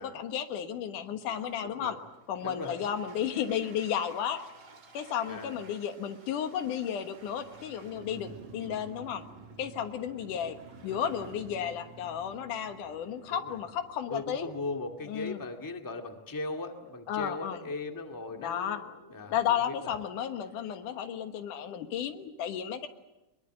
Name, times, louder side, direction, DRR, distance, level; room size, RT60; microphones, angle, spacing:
voice 1, 0.0-2.0 2.3-4.4 4.9-9.2 9.6-10.6 10.8-14.5 15.1-15.4 17.1-17.6 18.4-18.8 19.3-22.9, left 9 dB, 90° left, 8 dB, 3.0 m, -33 dB
Toilet flush, 1.1-14.2, right 3 dB, 40° right, 3.3 m, -57 dB
voice 2, 1.6-2.0 2.4-2.7 5.3-5.6 13.2-13.5 14.1-19.3 19.7-19.9, left 3 dB, 10° left, 4 dB, 1.4 m, -38 dB
Motorcycle, 7.2-17.3 17.6-17.7, right 4 dB, 70° right, 3.6 m, -52 dB
23.5 x 22.0 x 9.0 m, 0.98 s
omnidirectional pair, 3.5 m